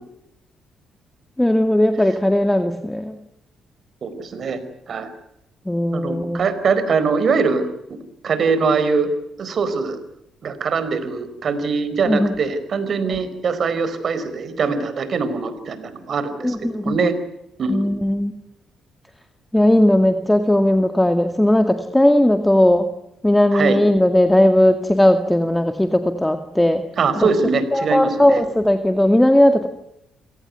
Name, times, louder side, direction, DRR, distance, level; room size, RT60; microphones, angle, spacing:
voice 1, 1.4-3.2 5.7-6.4 12.0-12.4 13.1-13.2 16.4-17.0 17.7-18.3 19.5-22.9 23.2-26.8 27.2-27.3 27.7-29.7, left 1 dB, 10° left, 7 dB, 2.0 m, -17 dB
voice 2, 4.0-4.6 4.9-5.1 5.9-7.7 8.2-9.1 9.4-10.0 10.4-17.1 17.6-17.9 23.5-23.8 27.0-28.4, right 5 dB, 50° right, 12 dB, 4.7 m, -22 dB
28.0 x 18.0 x 9.5 m, 0.82 s
cardioid pair, 90°, 0 cm